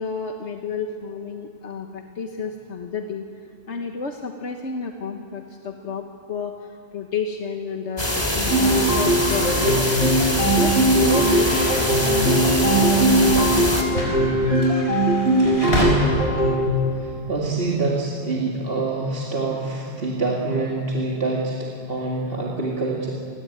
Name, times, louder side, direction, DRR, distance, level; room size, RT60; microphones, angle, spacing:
voice 1, 0.0-3.2 3.7-9.9 10.4-13.8 16.1-16.2, left 5 dB, 85° left, 3 dB, 1.6 m, -31 dB
sound 1, 8.0-13.8, left 1 dB, 20° left, 3.0 m, -24 dB
sound 2, 8.5-16.7, right 1 dB, 80° right, 3.5 m, -20 dB
sound 3, 10.0-15.9, left 1 dB, 65° left, 5.6 m, -32 dB
voice 2, 15.6-16.2 16.8-23.1, right 2 dB, 55° right, -3 dB, 2.7 m, -26 dB
28.0 x 21.5 x 8.8 m, 2.5 s
omnidirectional pair, 1.1 m